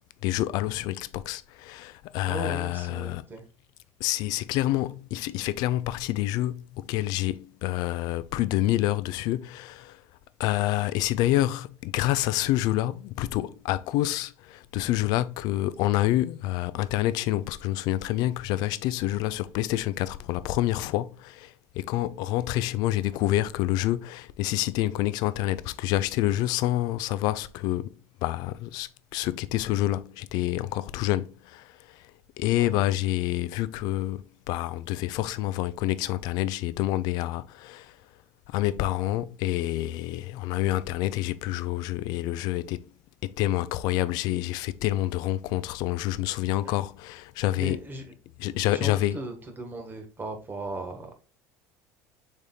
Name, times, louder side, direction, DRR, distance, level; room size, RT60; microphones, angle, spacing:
voice 1, 0.2-3.3 4.0-10.0 10.4-27.9 28.2-32.0 32.4-38.0 38.5-42.8 43.2-47.8 48.4-49.2, left 15 dB, 65° left, 0.4 m, -28 dB
voice 2, 2.3-3.4 32.6-32.8 46.6-46.7 47.6-48.0 48.7-51.1, right 2 dB, 25° right, 1.4 m, -37 dB
4.1 x 3.4 x 3.7 m
supercardioid pair, 95°, 8 cm